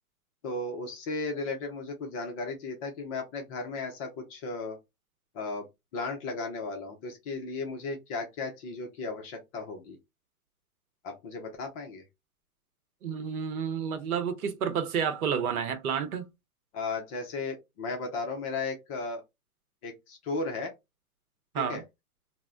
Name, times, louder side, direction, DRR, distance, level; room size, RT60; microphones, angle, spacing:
voice 1, 0.4-4.8 5.3-5.7 5.9-10.0 11.0-12.0 16.7-19.2 19.8-20.7 21.6-21.8, left 3 dB, 25° left, 0.4 m, -35 dB
voice 2, 13.0-16.3 21.5-21.8, right 7 dB, 80° right, 0.8 m, -30 dB
2.1 x 2.0 x 3.5 m
hypercardioid pair, 125°, 43 cm